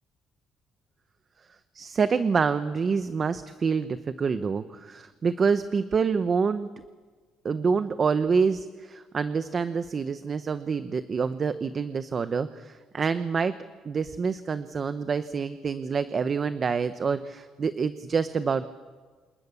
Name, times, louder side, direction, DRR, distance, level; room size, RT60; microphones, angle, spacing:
voice 1, 1.7-6.7 7.4-13.6 13.8-18.6, right 5 dB, 30° right, 11 dB, 0.8 m, -27 dB
29.5 x 27.5 x 6.9 m, 1.4 s
cardioid pair, 145°, 0 cm